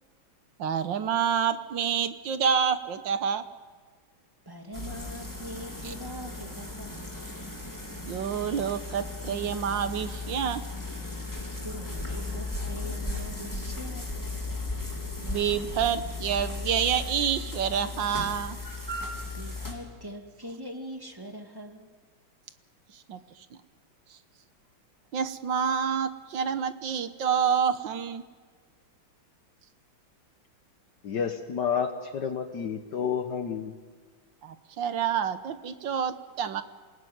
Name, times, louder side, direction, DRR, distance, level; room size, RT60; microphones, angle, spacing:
voice 1, 0.6-3.4 5.8-5.9 8.0-10.6 15.2-18.6 22.9-23.5 25.1-28.2 34.4-36.6, right 7 dB, 65° right, 11 dB, 1.7 m, -28 dB
voice 2, 4.5-7.0 11.6-14.2 19.3-21.9, equal, 10° right, 3 dB, 2.1 m, -42 dB
sound 1, 4.7-19.7, left 2 dB, 10° left, 3.5 m, -36 dB
voice 3, 31.0-33.8, left 7 dB, 60° left, 6 dB, 1.6 m, -30 dB
27.5 x 18.5 x 9.4 m, 1.5 s
omnidirectional pair, 2.3 m